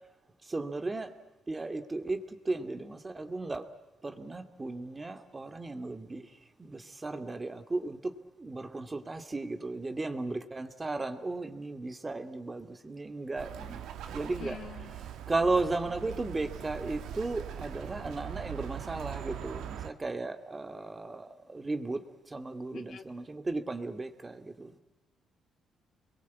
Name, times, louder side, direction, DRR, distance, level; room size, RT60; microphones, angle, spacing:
voice 1, 0.5-1.1 1.5-3.7 4.0-6.3 6.6-8.1 8.4-14.6 15.3-22.0 22.3-24.7, right 3 dB, 20° right, 7 dB, 2.4 m, -35 dB
Bird, 13.4-19.9, right 10 dB, 85° right, 2.1 m, -41 dB
voice 2, 14.4-15.0 22.7-23.1, left 7 dB, 60° left, 7 dB, 2.1 m, -45 dB
29.5 x 22.0 x 8.5 m, 1.0 s
cardioid pair, 90°, 0 cm